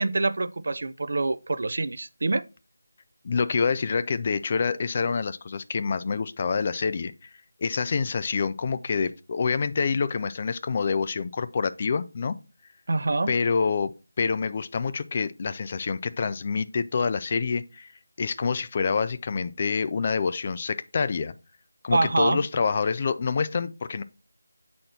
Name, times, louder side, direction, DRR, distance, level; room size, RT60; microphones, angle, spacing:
voice 1, 0.0-2.4 12.9-13.3 21.9-22.4, right 3 dB, 50° right, 0.5 m, -25 dB
voice 2, 3.2-7.3 7.6-12.4 13.3-17.9 18.2-21.3 21.8-24.0, left 5 dB, 30° left, 0.4 m, -27 dB
7.5 x 4.2 x 4.2 m
figure-of-eight pair, 165°, 0 cm